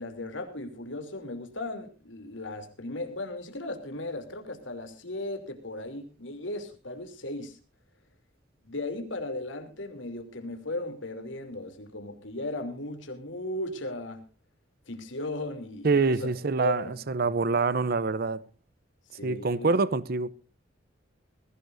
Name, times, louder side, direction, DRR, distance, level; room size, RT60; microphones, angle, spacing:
voice 1, 0.0-7.6 8.6-14.2 14.9-16.3 16.6-16.9 17.2-17.3 19.1-19.7, left 2 dB, 90° left, 3.0 m, -36 dB
voice 2, 15.8-18.4 19.2-20.3, right 4 dB, 50° right, 0.6 m, -26 dB
21.0 x 16.5 x 2.6 m
head